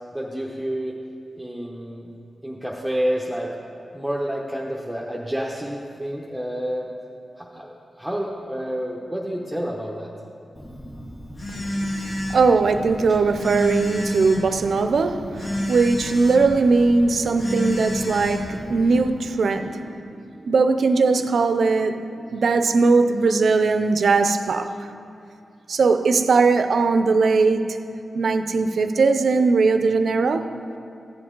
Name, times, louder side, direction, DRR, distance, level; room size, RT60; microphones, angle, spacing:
voice 1, 0.1-1.0 1.3-2.1 2.4-3.5 3.9-6.9 7.4-10.1, equal, 5° right, 0.9 m, -29 dB
Telephone, 10.5-19.1, left 1 dB, 55° left, 2.1 m, -31 dB
voice 2, 11.5-19.9 20.4-22.0 22.3-24.9 25.7-27.8 28.1-30.5, right 4 dB, 75° right, 0.5 m, -20 dB
15.0 x 7.8 x 3.8 m
wide cardioid pair, 80°, 0 cm